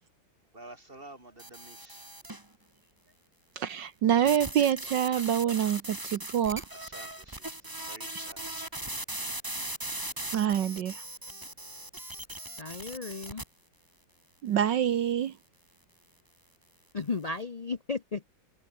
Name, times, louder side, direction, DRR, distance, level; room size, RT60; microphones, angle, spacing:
voice 1, 0.5-2.4 6.7-7.6 7.9-8.4, right 2 dB, 30° right, 4.9 m, -50 dB
sound 1, 1.4-2.5 4.3-13.4, right 1 dB, 10° right, 2.2 m, -39 dB
voice 2, 3.6-6.6 10.3-11.0 14.4-15.3, right 9 dB, 70° right, 1.7 m, -26 dB
voice 3, 12.6-13.4 16.9-18.3, left 4 dB, 75° left, 0.3 m, -34 dB
omnidirectional pair, 2.0 m